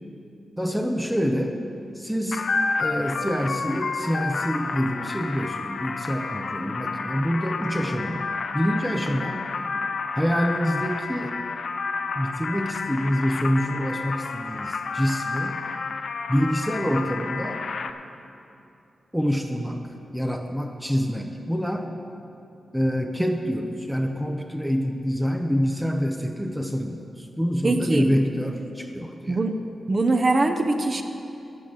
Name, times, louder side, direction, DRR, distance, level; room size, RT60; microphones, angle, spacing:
voice 1, 0.6-1.6 1.9-2.4 2.8-9.5 10.1-11.3 12.2-15.6 16.3-17.6 19.1-19.8 20.1-21.9 22.7-29.4, equal, ahead, 3 dB, 0.7 m, -26 dB
sound 1, 2.3-17.9, left 4 dB, 65° left, 0.6 m, -30 dB
voice 2, 27.6-28.1 29.3-29.6 29.9-31.0, right 2 dB, 35° right, 5 dB, 0.7 m, -22 dB
10.5 x 8.5 x 7.7 m, 2.7 s
wide cardioid pair, 110°, 0 cm